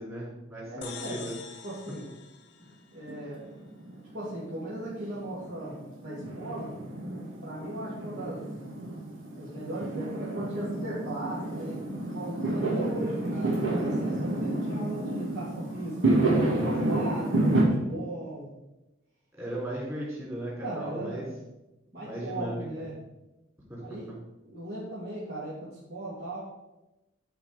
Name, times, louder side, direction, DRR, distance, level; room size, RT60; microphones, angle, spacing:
voice 1, 0.0-1.3 16.8-17.0 19.4-21.3 22.0-22.7 23.7-24.2, right 1 dB, 15° right, -5 dB, 3.6 m, -37 dB
voice 2, 0.6-1.2 1.6-2.1 2.9-3.4 4.1-6.7 7.4-8.4 9.3-16.1 16.5-18.5 20.6-21.3 21.9-23.0 23.8-24.1 24.4-26.4, right 1 dB, 55° right, -10 dB, 2.6 m, -37 dB
sound 1, 0.8-3.4, left 7 dB, 65° left, 0.9 m, -45 dB
Fireworks, 3.1-17.6, right 2 dB, 90° right, 2.2 m, -30 dB
11.0 x 4.6 x 5.0 m, 0.98 s
head